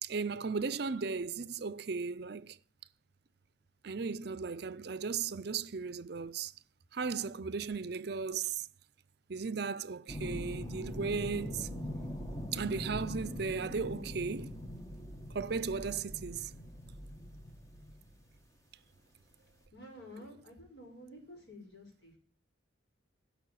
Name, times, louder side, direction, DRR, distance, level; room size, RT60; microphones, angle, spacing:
voice 1, 0.0-2.6 3.8-6.5 6.9-8.7 9.3-11.7 12.5-14.6 15.3-16.5, right 5 dB, 55° right, 0.5 m, -36 dB
sound 1, 10.1-18.3 19.7-19.8, equal, 15° left, 1.4 m, -42 dB
voice 2, 19.7-22.2, left 1 dB, 70° left, 5.5 m, -51 dB
11.0 x 6.7 x 9.4 m
head